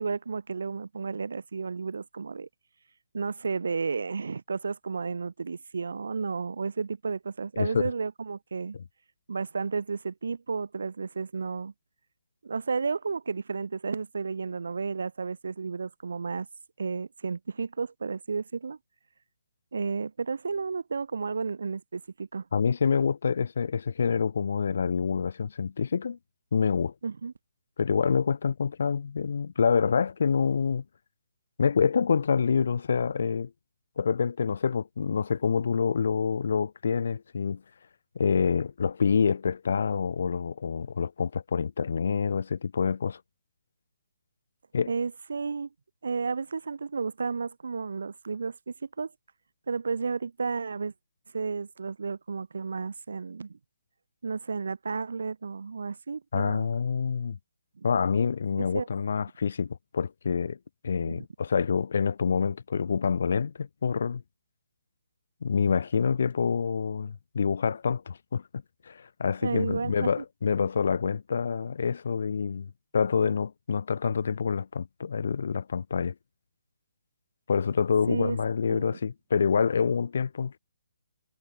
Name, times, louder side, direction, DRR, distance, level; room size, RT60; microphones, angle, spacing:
voice 1, 0.0-2.5 3.1-8.7 9.3-11.7 12.4-16.5 16.8-18.8 19.7-22.4 27.0-27.3 44.9-45.7 46.0-49.1 49.7-50.9 51.3-53.6 54.2-56.7 57.8-57.9 58.6-58.9 61.0-61.3 69.4-70.1 78.1-78.4 78.7-79.0, right 5 dB, 75° right, 3.0 m, -32 dB
voice 2, 22.5-26.2 26.5-26.9 27.8-30.8 31.6-33.5 34.0-37.6 38.1-43.2 44.7-44.9 56.3-57.4 57.8-60.6 60.8-64.2 65.4-68.4 68.9-76.1 77.5-80.6, left 6 dB, 60° left, 0.8 m, -27 dB
hypercardioid pair, 165°, 0 cm